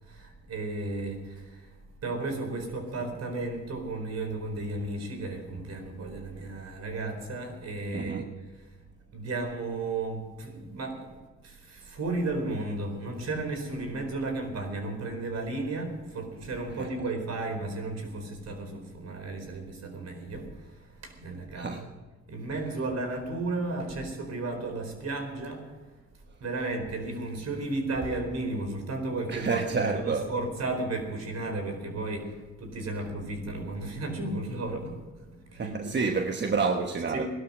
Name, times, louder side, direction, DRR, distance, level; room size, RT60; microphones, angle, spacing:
voice 1, 0.0-1.8 2.0-8.7 9.1-11.2 11.4-21.9 22.3-25.7 26.4-35.0 35.3-36.0 37.1-37.3, right 2 dB, 60° right, 4.5 m, -34 dB
voice 2, 7.9-8.3 16.7-16.9 21.6-21.8 29.3-30.3 35.5-37.3, right 4 dB, 35° right, 1.1 m, -29 dB
18.0 x 12.0 x 6.4 m
cardioid pair, 90°, 30 cm